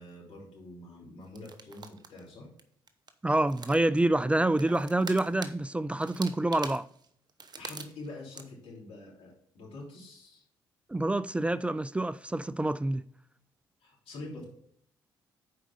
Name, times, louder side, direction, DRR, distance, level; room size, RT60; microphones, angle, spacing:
voice 1, 0.0-2.5 7.6-10.4 13.8-14.4, left 2 dB, 65° left, 3.4 m, -45 dB
sound 1, 1.3-2.3 2.6-2.7 2.9-4.0 4.6-5.5 6.0-8.1 8.3-8.5, right 5 dB, 40° right, 0.9 m, -44 dB
voice 2, 3.2-6.9 10.9-13.0, right 2 dB, 10° right, 0.3 m, -27 dB
7.5 x 4.8 x 5.3 m
hypercardioid pair, 50°, 11 cm